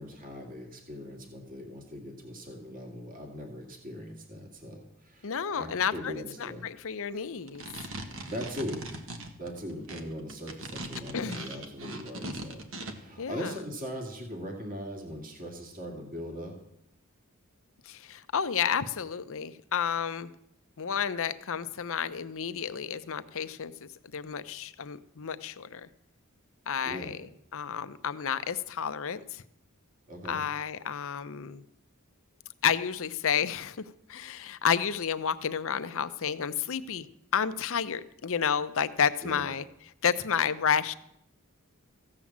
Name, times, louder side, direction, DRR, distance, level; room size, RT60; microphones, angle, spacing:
voice 1, 0.0-6.7 8.0-8.8 9.4-16.5 26.8-27.2 30.1-30.4 39.2-39.4, equal, 40° right, 2 dB, 2.4 m, -40 dB
voice 2, 5.2-7.7 11.1-11.5 13.2-13.5 17.8-20.3 20.8-25.9 26.7-27.2 27.5-29.4 30.3-31.6 32.6-37.1 37.3-39.6 40.0-40.9, left 7 dB, 65° left, 12 dB, 0.7 m, -31 dB
sound 1, 7.4-12.9, right 2 dB, 65° right, 1.7 m, -40 dB
15.5 x 8.8 x 7.3 m, 0.78 s
head